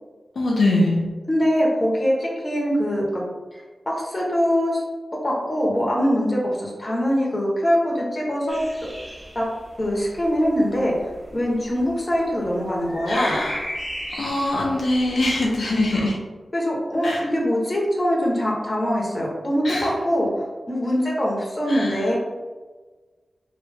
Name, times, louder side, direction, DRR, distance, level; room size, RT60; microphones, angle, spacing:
voice 1, 0.4-1.0 13.1-13.6 14.2-16.2 17.0-17.2 19.6-19.9 21.7-22.0, left 2 dB, 80° left, -3 dB, 0.7 m, -22 dB
voice 2, 1.3-3.2 3.5-3.6 3.9-4.8 5.2-8.6 9.3-9.4 9.8-10.9 11.3-13.4 15.6-16.1 16.5-22.2, equal, 25° left, -3 dB, 1.0 m, -23 dB
sound 1, 8.5-16.1, equal, 10° right, 0.8 m, -37 dB
3.1 x 2.8 x 3.4 m, 1.3 s
wide cardioid pair, 90°, 0 cm